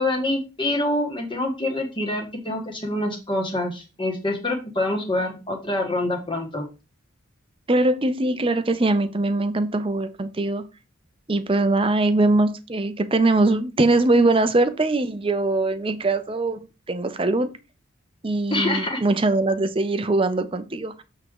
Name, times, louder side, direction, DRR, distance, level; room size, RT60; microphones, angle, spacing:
voice 1, 0.0-6.6 18.5-19.0, left 1 dB, 25° left, 1.6 m, -26 dB
voice 2, 7.7-10.7 11.3-16.6 16.9-17.5 18.2-21.0, right 2 dB, 25° right, 0.6 m, -21 dB
7.9 x 3.7 x 4.8 m
head